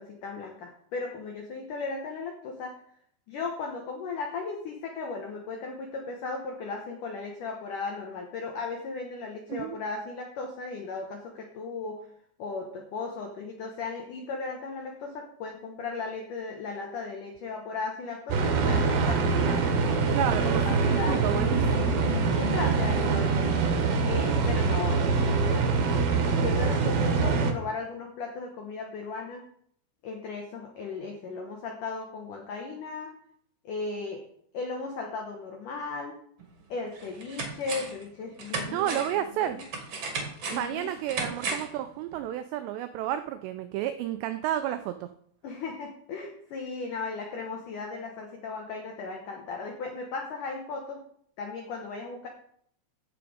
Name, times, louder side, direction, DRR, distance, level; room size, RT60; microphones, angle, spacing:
voice 1, 0.0-2.7 3.3-12.0 12.4-19.9 20.5-21.2 21.7-23.6 24.0-25.6 26.3-29.4 30.0-33.1 33.6-34.2 34.5-36.2 36.7-39.0 39.3-39.6 40.5-40.9 45.4-51.0 51.4-52.3, left 4 dB, 80° left, 2 dB, 1.8 m, -36 dB
sound 1, 18.3-27.5, right 4 dB, 65° right, 2.5 m, -24 dB
voice 2, 20.1-22.0 38.7-39.6 40.5-45.1, right 11 dB, 85° right, 9 dB, 2.4 m, -31 dB
sound 2, 36.4-36.5 36.9-38.0 38.4-41.8 42.1-42.2, right 4 dB, 50° right, 2.0 m, -35 dB
15.0 x 5.9 x 5.0 m, 0.65 s
omnidirectional pair, 5.6 m